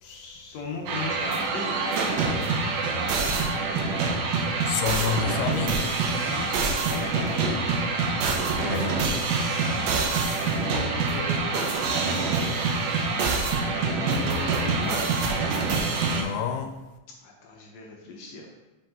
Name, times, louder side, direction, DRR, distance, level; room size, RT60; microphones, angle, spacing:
voice 1, 0.0-1.8 6.1-7.6 10.3-12.2 13.7-15.1 17.2-18.7, left 4 dB, 70° left, 1.7 m, -37 dB
sound 1, 0.9-16.2, right 4 dB, 75° right, 1.6 m, -26 dB
voice 2, 4.7-5.8 8.6-9.0 16.1-16.8, left 8 dB, 90° left, 2.2 m, -29 dB
5.4 x 5.3 x 3.6 m
omnidirectional pair, 3.7 m